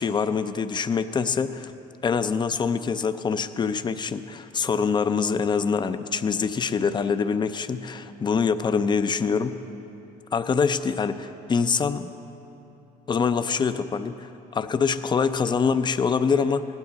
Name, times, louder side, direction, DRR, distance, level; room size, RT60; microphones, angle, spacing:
voice 1, 0.0-1.7 2.0-9.5 10.3-12.1 13.1-16.7, left 5 dB, 25° left, 11 dB, 0.5 m, -25 dB
18.0 x 11.5 x 4.0 m, 2.9 s
cardioid pair, 110°, 17 cm